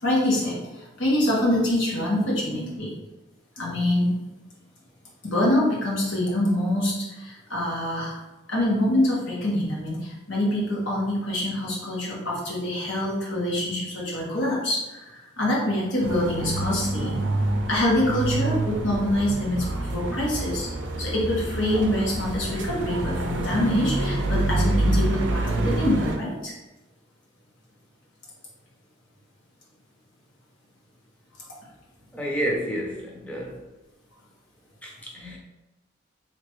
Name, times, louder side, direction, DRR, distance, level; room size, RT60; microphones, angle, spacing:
voice 1, 0.0-2.9 3.6-4.1 5.2-8.2 8.5-17.1 17.7-20.7 21.0-26.5, left 1 dB, 90° left, -4 dB, 1.3 m, -25 dB
sound 1, 16.0-26.2, right 2 dB, 85° right, 0.5 m, -27 dB
voice 2, 32.1-33.6 34.8-35.4, equal, 5° left, -2 dB, 0.6 m, -30 dB
3.4 x 2.8 x 3.0 m, 1.0 s
head